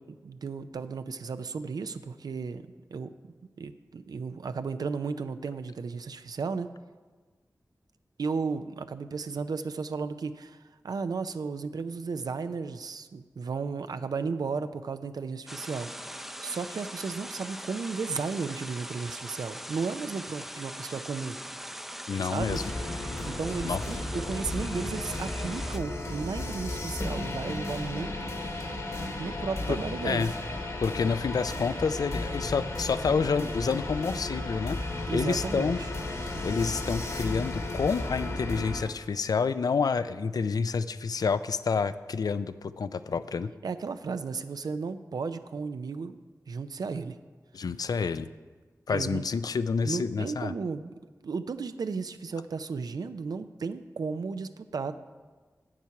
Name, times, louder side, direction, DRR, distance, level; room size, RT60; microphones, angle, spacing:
voice 1, 0.0-6.7 8.2-21.4 22.2-22.6 23.3-28.6 29.2-30.2 35.1-35.9 43.6-46.2 46.5-47.2 48.9-49.3 49.8-50.9 51.2-55.0, right 5 dB, 80° right, 10 dB, 0.4 m, -34 dB
sound 1, 15.5-25.8, equal, 5° right, 0.5 m, -41 dB
voice 2, 22.1-22.6 23.6-23.8 29.7-29.8 30.0-30.3 30.8-34.8 35.1-35.8 36.4-43.5 47.5-48.3 48.9-50.5, left 5 dB, 75° left, 13 dB, 0.4 m, -28 dB
sound 2, 22.4-38.8, left 2 dB, 55° left, 1.4 m, -34 dB
8.2 x 7.3 x 5.8 m, 1.4 s
cardioid pair, 40°, 7 cm